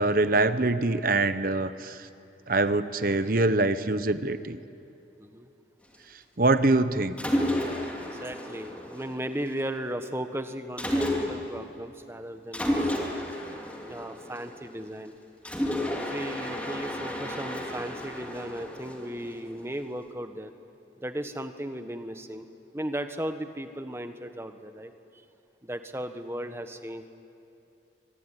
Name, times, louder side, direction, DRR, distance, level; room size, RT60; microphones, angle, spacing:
voice 1, 0.0-2.1 2.5-4.6 6.4-7.1, right 2 dB, 50° right, 12 dB, 1.0 m, -24 dB
Mechanisms, 7.2-9.6 10.8-11.6 12.5-14.8 15.4-19.6, left 1 dB, 10° left, 2.8 m, -32 dB
voice 2, 8.1-13.1 13.9-15.1 15.7-20.5 21.0-22.5 22.7-24.9 25.6-27.1, right 1 dB, 15° right, 8 dB, 1.3 m, -36 dB
24.5 x 24.0 x 9.9 m, 2.8 s
head